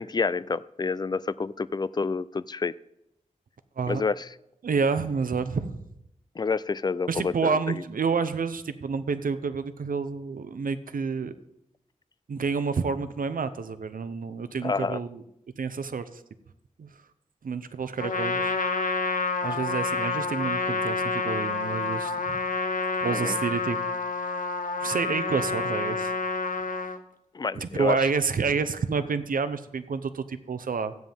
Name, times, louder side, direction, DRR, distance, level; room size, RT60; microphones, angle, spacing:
voice 1, 0.0-2.7 3.9-4.3 6.4-7.6 14.6-15.0 23.1-23.4 27.3-28.0, left 4 dB, 30° left, 17 dB, 0.3 m, -28 dB
voice 2, 4.6-5.8 7.1-11.3 12.3-15.2 15.6-16.2 16.8-16.9 17.4-18.5 19.4-22.4 23.0-23.8 24.8-26.2 27.5-30.9, right 5 dB, 85° right, 11 dB, 0.7 m, -29 dB
Trumpet, 18.0-27.0, left 4 dB, 75° left, 0.8 m, -28 dB
15.5 x 9.2 x 3.5 m, 0.83 s
wide cardioid pair, 75°, 14 cm